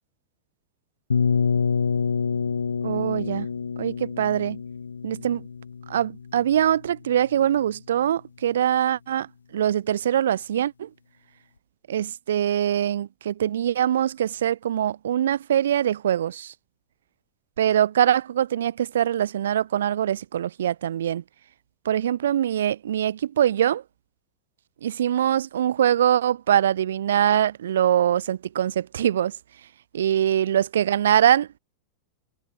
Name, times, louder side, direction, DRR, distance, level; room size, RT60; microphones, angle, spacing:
sound 1, 1.1-6.9, left 6 dB, 75° left, 1.8 m, -27 dB
voice 1, 2.8-3.5 3.8-4.6 5.0-5.5 5.9-10.9 11.9-16.5 17.6-21.2 21.8-23.8 24.8-29.3 29.9-31.6, right 10 dB, 60° right, 0.8 m, -23 dB
figure-of-eight pair, 90°, 0 cm